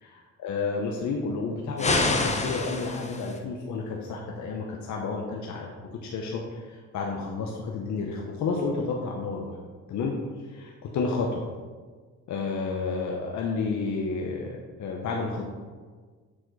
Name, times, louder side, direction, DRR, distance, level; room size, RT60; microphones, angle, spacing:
voice 1, 0.0-9.6 9.9-10.1 10.4-11.4 12.3-15.4, left 4 dB, 70° left, 0 dB, 0.9 m, -31 dB
sound 1, 1.8-3.4, left 2 dB, 25° left, 0.8 m, -27 dB
7.4 x 4.3 x 4.6 m, 1.5 s
cardioid pair, 90°, 30 cm